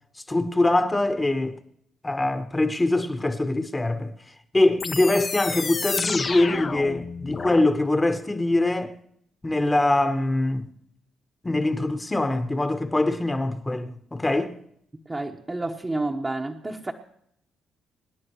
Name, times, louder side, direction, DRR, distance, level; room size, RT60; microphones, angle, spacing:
voice 1, 0.3-1.6 2.0-4.1 4.5-8.9 9.4-10.7 11.4-14.6, left 2 dB, 15° left, 1.1 m, -23 dB
sound 1, 4.8-7.7, left 4 dB, 35° left, 0.7 m, -30 dB
voice 2, 15.1-16.9, right 2 dB, 20° right, 1.1 m, -30 dB
26.0 x 10.5 x 3.1 m
cardioid pair, 90°, 0 cm